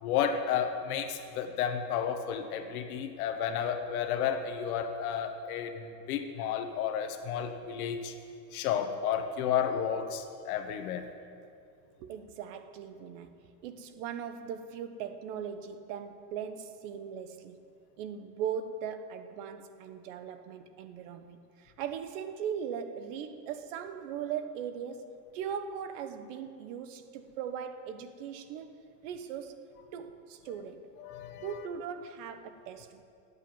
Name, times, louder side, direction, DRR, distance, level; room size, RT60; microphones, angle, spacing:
voice 1, 0.0-8.1 8.5-11.1 31.0-31.6, left 8 dB, 60° left, 1.5 m, -32 dB
voice 2, 12.0-17.6 18.0-28.7 29.0-29.6 29.9-30.9 31.4-33.0, right 8 dB, 50° right, 1.1 m, -39 dB
15.0 x 8.4 x 9.3 m
supercardioid pair, 170°, 50 cm